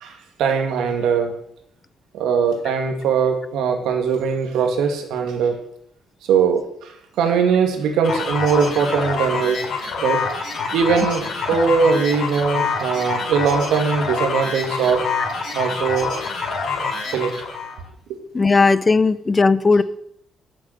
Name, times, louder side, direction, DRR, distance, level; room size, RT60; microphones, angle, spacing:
voice 1, 0.0-1.3 2.1-5.6 6.3-9.6 10.0-10.2 10.7-15.1 15.5-16.1 17.1-17.3 18.1-18.2, right 6 dB, 85° right, 5 dB, 2.0 m, -20 dB
sound 1, 8.0-17.8, left 4 dB, 70° left, 5.1 m, -26 dB
voice 2, 18.3-19.8, left 4 dB, 25° left, 16 dB, 0.6 m, -16 dB
9.4 x 6.9 x 7.8 m, 0.72 s
cardioid pair, 90°, 0 cm